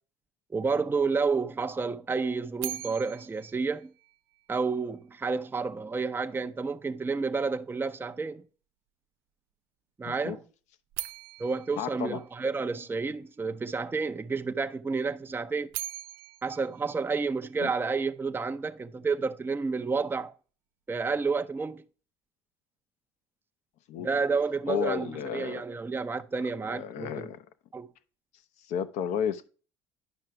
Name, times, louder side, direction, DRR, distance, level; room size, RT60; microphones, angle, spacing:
voice 1, 0.5-3.9 4.5-8.4 10.0-10.4 11.4-15.7 16.4-20.3 20.9-21.8 24.0-27.3 27.7-27.9, right 4 dB, 15° right, 0.6 m, -30 dB
sound 1, 2.6-4.7 10.9-13.1 15.4-17.9, right 14 dB, 85° right, 0.5 m, -42 dB
voice 2, 10.0-10.4 11.8-12.2 17.6-17.7 23.9-24.1 24.7-25.6 26.7-27.5 28.6-29.5, left 8 dB, 70° left, 0.8 m, -32 dB
10.0 x 5.7 x 3.2 m
supercardioid pair, 75°, 13 cm